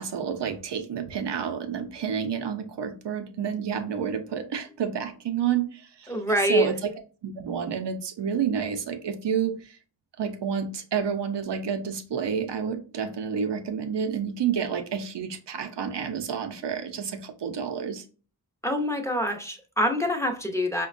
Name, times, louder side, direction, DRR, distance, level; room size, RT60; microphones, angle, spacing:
voice 1, 0.0-6.2 6.5-6.9 7.2-9.8 10.2-18.0, right 7 dB, 85° right, 0.6 m, -29 dB
voice 2, 6.1-6.7 18.6-20.9, equal, 5° left, 0.5 m, -25 dB
5.1 x 2.2 x 2.4 m
wide cardioid pair, 80°, 41 cm